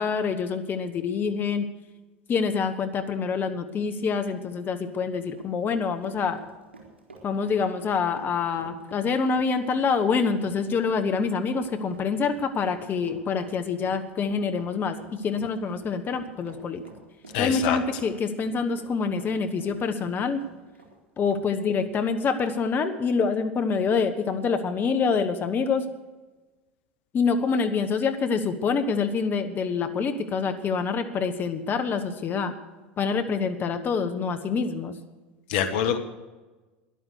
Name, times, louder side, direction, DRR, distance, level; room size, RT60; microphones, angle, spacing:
voice 1, 0.0-1.7 2.3-6.4 7.2-16.8 17.4-20.4 21.2-25.8 27.1-32.5 33.0-34.9, left 5 dB, 35° left, 8 dB, 1.2 m, -26 dB
Run, 5.0-21.4 21.8-21.9 22.4-22.6, right 3 dB, 85° right, 4.1 m, -49 dB
voice 2, 17.3-17.8 35.5-36.0, left 8 dB, 60° left, 9 dB, 1.3 m, -25 dB
14.0 x 11.0 x 6.5 m, 1.2 s
figure-of-eight pair, 80°, 6 cm